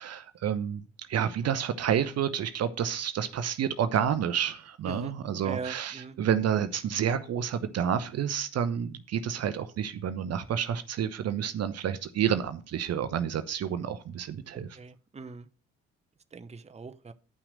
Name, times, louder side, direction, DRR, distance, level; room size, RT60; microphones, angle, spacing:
voice 1, 0.0-14.8, right 8 dB, 45° right, 0.8 m, -29 dB
voice 2, 5.4-6.2 14.8-15.5 16.3-17.1, right 5 dB, 20° right, 0.8 m, -40 dB
9.7 x 5.8 x 6.3 m
figure-of-eight pair, 45°, 35 cm